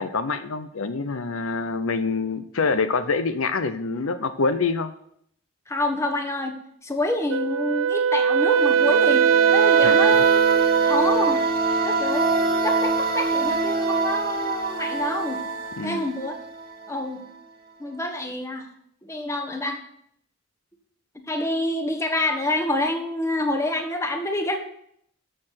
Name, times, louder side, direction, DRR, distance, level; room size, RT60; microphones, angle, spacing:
voice 1, 0.0-4.9 9.8-10.2 15.8-16.1, left 4 dB, 75° left, 11 dB, 0.7 m, -26 dB
voice 2, 5.7-6.5 6.8-11.4 11.8-15.4 15.8-16.4 16.9-17.2 17.8-18.7 19.0-19.8 21.3-24.6, left 1 dB, 15° left, 4 dB, 1.3 m, -27 dB
Wind instrument woodwind instrument, 7.3-11.4, right 8 dB, 65° right, 0.4 m, -20 dB
sound 1, 8.4-17.0, right 3 dB, 45° right, 1.6 m, -25 dB
13.0 x 6.7 x 5.8 m, 0.70 s
head